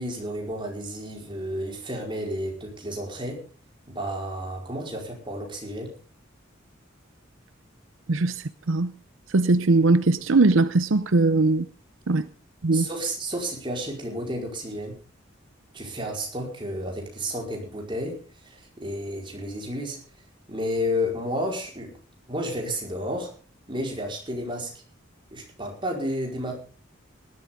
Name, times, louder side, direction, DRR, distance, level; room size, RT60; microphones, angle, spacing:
voice 1, 0.0-3.4 3.9-5.9 12.7-15.0 15.7-18.2 18.4-20.0 20.5-22.0 22.3-23.3 23.7-24.7 25.3-26.5, equal, 25° right, 4.9 m, -31 dB
voice 2, 8.1-8.9 9.3-11.7 12.1-12.3 12.6-12.9, right 3 dB, 80° right, 0.7 m, -20 dB
19.0 x 12.5 x 3.8 m
head